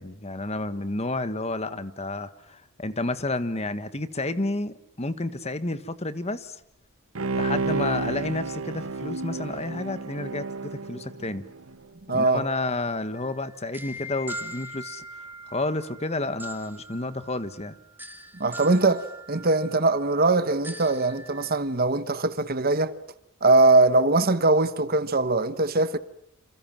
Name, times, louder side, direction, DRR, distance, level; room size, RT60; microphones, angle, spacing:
voice 1, 0.0-6.6 7.3-11.4 12.1-17.8, left 2 dB, 30° left, 1.4 m, -31 dB
Bowed string instrument, 7.1-11.8 12.2-12.3, right 3 dB, 75° right, 1.3 m, -31 dB
voice 2, 12.1-12.4 18.4-22.9 23.4-26.0, right 2 dB, 45° right, 1.2 m, -21 dB
sound 1, 13.2-21.6, equal, 10° right, 2.4 m, -42 dB
28.5 x 27.5 x 7.5 m
head